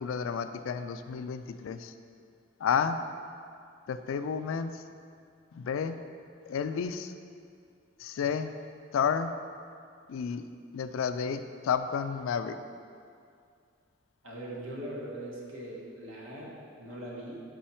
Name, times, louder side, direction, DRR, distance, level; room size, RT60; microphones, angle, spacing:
voice 1, 0.0-1.9 2.6-3.0 3.9-4.8 5.5-6.0 6.5-7.1 8.0-8.6 8.9-9.3 10.1-12.6, left 6 dB, 75° left, 10 dB, 0.3 m, -31 dB
voice 2, 14.2-17.3, right 1 dB, 85° right, -4 dB, 1.3 m, -41 dB
5.5 x 5.0 x 4.3 m, 2.3 s
head